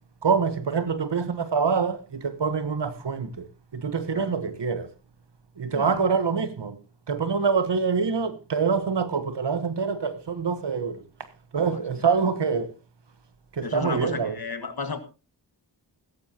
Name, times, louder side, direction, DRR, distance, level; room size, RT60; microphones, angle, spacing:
voice 1, 0.2-3.5 3.7-4.9 5.6-6.8 7.1-11.0 11.5-12.7 13.5-14.4, right 5 dB, 70° right, 1.2 m, -25 dB
voice 2, 13.6-15.0, left 4 dB, 55° left, 1.7 m, -33 dB
15.5 x 14.0 x 2.9 m
wide cardioid pair, 70°, 43 cm